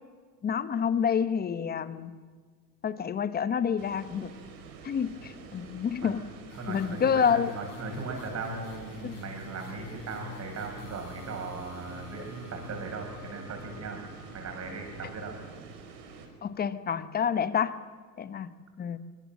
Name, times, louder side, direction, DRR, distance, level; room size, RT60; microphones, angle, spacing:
voice 1, 0.4-2.2 2.8-4.3 4.8-6.3 6.7-7.5 9.0-9.2 16.4-17.8 18.2-19.0, left 7 dB, 20° left, 14 dB, 0.9 m, -28 dB
sound 1, 3.8-16.3, right 5 dB, 55° right, 4.5 m, -47 dB
sound 2, 6.5-15.1, left 8 dB, 65° left, 4.9 m, -48 dB
voice 2, 6.5-14.0 14.3-15.4, right 4 dB, 30° right, 2 dB, 6.7 m, -38 dB
23.5 x 20.0 x 7.5 m, 1.5 s
supercardioid pair, 115°, 49 cm